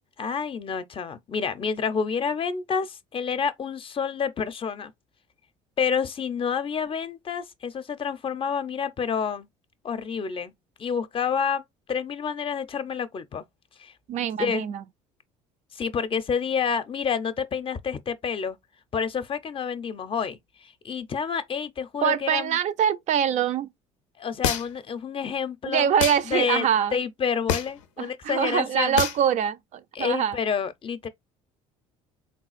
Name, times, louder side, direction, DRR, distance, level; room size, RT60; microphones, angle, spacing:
voice 1, 0.2-4.9 5.8-9.5 9.8-10.5 10.8-11.6 11.9-13.4 13.8-13.9 14.4-14.7 15.7-18.6 18.9-22.6 24.2-25.9 26.3-29.0 29.9-31.1, left 6 dB, 35° left, 0.5 m, -28 dB
voice 2, 14.1-14.8 22.0-23.7 25.7-27.0 28.0-30.4, right 9 dB, 50° right, 0.4 m, -24 dB
sound 1, 24.4-24.9 26.0-26.2 27.5-27.8 29.0-29.2, left 8 dB, 90° left, 0.5 m, -26 dB
3.6 x 2.4 x 2.4 m
hypercardioid pair, 70°, 15 cm